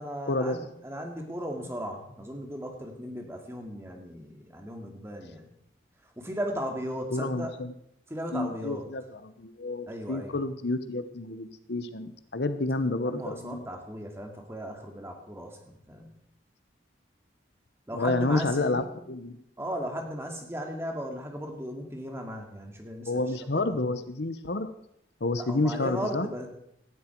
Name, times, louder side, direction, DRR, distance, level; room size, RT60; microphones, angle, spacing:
voice 1, 0.0-5.5 6.0-7.6 8.1-8.9 9.9-10.4 12.9-16.1 17.9-18.9 19.6-23.8 25.4-26.5, equal, 15° right, 2 dB, 2.3 m, -37 dB
voice 2, 7.1-7.7 8.3-13.6 17.9-19.4 23.1-24.7 25.2-26.3, left 2 dB, 70° left, 11 dB, 0.9 m, -29 dB
18.0 x 12.0 x 4.6 m, 0.75 s
head